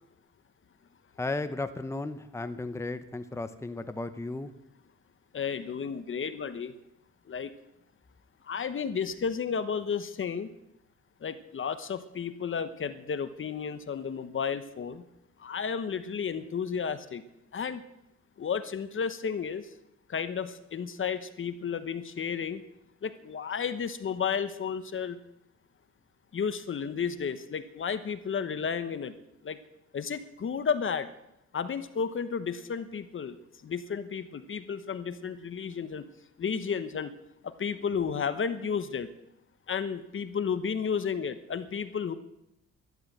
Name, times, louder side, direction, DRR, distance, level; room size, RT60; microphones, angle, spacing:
voice 1, 1.2-4.5, left 2 dB, 10° left, 10 dB, 0.9 m, -35 dB
voice 2, 5.3-6.7 7.3-7.5 8.4-10.5 11.2-15.0 15.4-17.2 17.5-17.8 18.4-19.7 20.1-22.6 23.0-25.2 26.3-29.1 29.4-29.6 29.9-31.1 31.5-33.4 33.6-36.1 36.4-37.1 37.4-39.1 39.7-42.2, left 6 dB, 40° left, 12 dB, 1.0 m, -32 dB
12.0 x 12.0 x 8.0 m, 0.85 s
cardioid pair, 90°, 30 cm